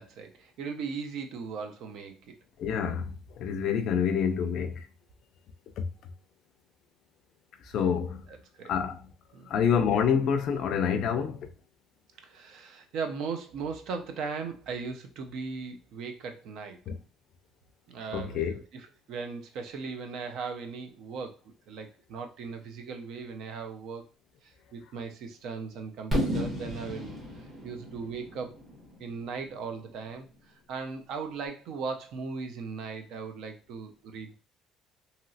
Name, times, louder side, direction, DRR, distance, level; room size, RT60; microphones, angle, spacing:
voice 1, 0.0-2.4 8.3-8.7 9.3-9.5 12.2-16.8 17.9-24.0 24.4-28.6 29.0-34.4, right 5 dB, 60° right, 0.5 m, -38 dB
voice 2, 2.6-4.9 7.7-8.2 8.7-9.0 9.5-11.5 16.9-17.0 18.1-18.6, left 7 dB, 55° left, 0.4 m, -27 dB
Fireworks, 26.1-30.0, equal, 25° right, 1.4 m, -33 dB
2.9 x 2.8 x 2.7 m
cardioid pair, 165°, 0 cm